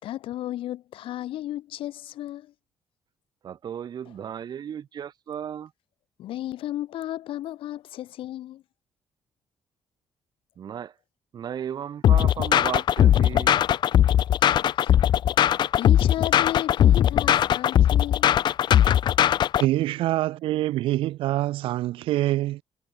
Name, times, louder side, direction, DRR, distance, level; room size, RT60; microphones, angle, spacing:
voice 1, 0.0-2.5 6.2-8.6 14.4-14.5 14.8-14.9 15.7-18.3, left 13 dB, 80° left, 2.0 m, -34 dB
voice 2, 3.4-5.7 10.6-10.9 11.3-13.6, right 8 dB, 50° right, 2.4 m, -35 dB
sound 1, 12.0-19.6, left 10 dB, 60° left, 0.7 m, -19 dB
voice 3, 19.6-22.6, right 15 dB, 85° right, 0.5 m, -25 dB
cardioid pair, 120°, 9 cm